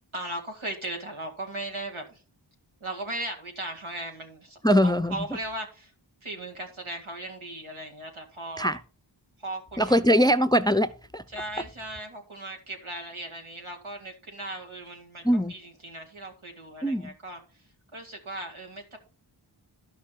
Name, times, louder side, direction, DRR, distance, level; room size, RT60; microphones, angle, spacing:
voice 1, 0.1-2.2 2.8-5.9 6.2-8.8 9.4-10.0 11.3-19.0, right 1 dB, 85° right, 2.2 m, -38 dB
voice 2, 4.6-5.2 8.6-8.8 9.8-11.2 15.2-15.5 16.8-17.1, equal, 10° left, 0.5 m, -22 dB
12.0 x 5.9 x 4.4 m
wide cardioid pair, 40°, 48 cm